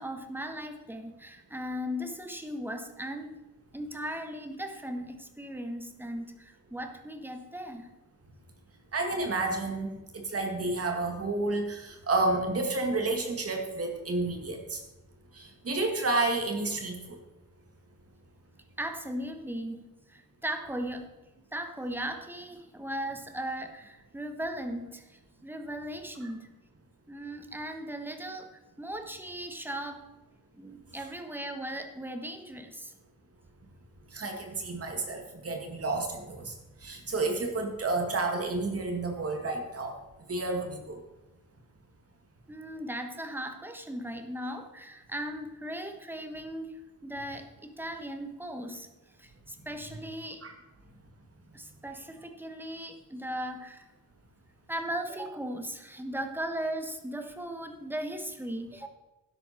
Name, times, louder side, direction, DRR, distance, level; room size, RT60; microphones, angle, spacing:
voice 1, 0.0-3.3 3.7-7.9 18.8-21.1 21.5-26.5 27.1-30.0 30.5-32.9 42.5-48.9 49.2-50.4 51.5-53.9 54.7-58.9, equal, 5° right, 6 dB, 1.2 m, -37 dB
voice 2, 8.9-14.8 15.3-17.2 34.1-36.5 36.8-40.0 40.3-41.0 50.4-50.5, right 2 dB, 40° right, 3 dB, 2.2 m, -30 dB
12.5 x 10.5 x 4.3 m, 1.0 s
wide cardioid pair, 130°, 35 cm